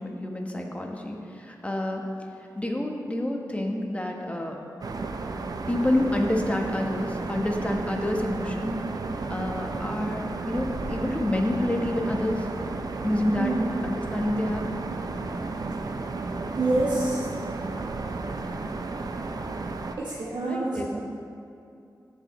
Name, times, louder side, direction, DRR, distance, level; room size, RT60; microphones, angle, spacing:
voice 1, 0.0-2.0 2.5-4.6 5.7-8.7 9.3-10.2 10.5-12.5 13.0-13.5 13.8-14.6 20.4-21.0, left 1 dB, 20° left, 1 dB, 1.1 m, -28 dB
sound 1, 4.8-20.0, right 3 dB, 60° right, 0.6 m, -33 dB
voice 2, 13.4-13.8 16.6-17.2 20.0-21.0, right 2 dB, 80° right, -5 dB, 0.9 m, -27 dB
13.0 x 5.9 x 3.1 m, 2.5 s
wide cardioid pair, 65°, 7 cm